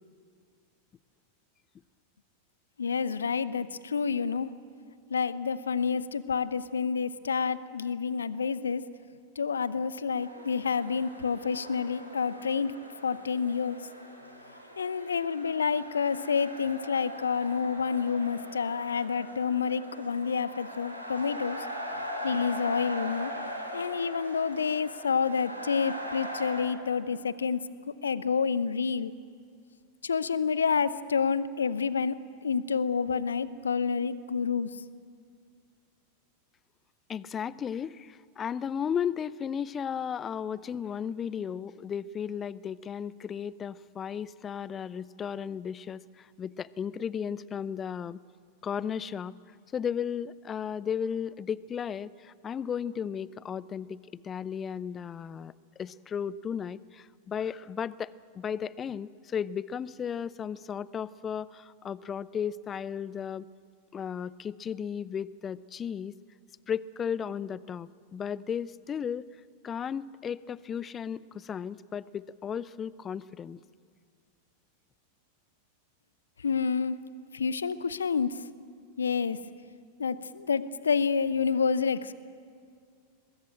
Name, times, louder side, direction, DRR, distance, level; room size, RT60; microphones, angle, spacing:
voice 1, 2.8-4.5 5.1-8.8 9.4-12.7 13.0-13.8 14.8-21.6 22.2-23.3 23.7-27.6 28.0-29.1 30.0-32.2 32.4-34.7 76.4-77.0 77.3-78.3 79.0-79.4 80.0-82.1, left 6 dB, 70° left, 17 dB, 0.8 m, -28 dB
sound 1, 10.2-26.6, equal, 90° right, 3.4 m, -41 dB
voice 2, 37.1-48.2 48.6-49.3 49.7-63.5 63.9-66.1 66.7-69.3 69.6-73.6, left 7 dB, 25° left, 21 dB, 0.6 m, -35 dB
22.0 x 21.0 x 8.9 m, 2.3 s
figure-of-eight pair, 90°, 0 cm